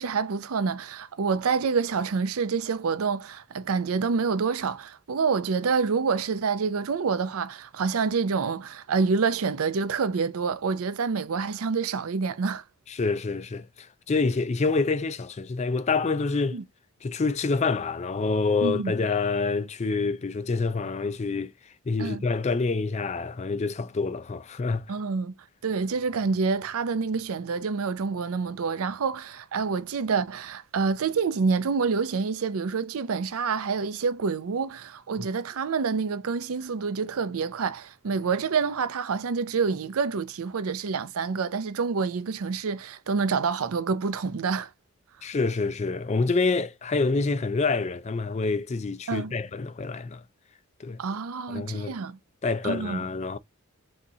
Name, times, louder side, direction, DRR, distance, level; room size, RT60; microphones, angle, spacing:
voice 1, 0.0-12.6 16.5-16.6 18.6-18.9 22.0-22.2 24.9-25.3 25.6-44.7 49.1-49.4 51.0-52.2 52.6-53.1, right 5 dB, 75° right, 0.5 m, -27 dB
voice 2, 12.9-16.6 17.0-21.5 21.9-24.9 35.2-35.3 45.2-50.2 50.8-51.0 51.5-52.0 52.4-53.4, left 4 dB, 30° left, 0.3 m, -27 dB
4.0 x 3.5 x 2.7 m
head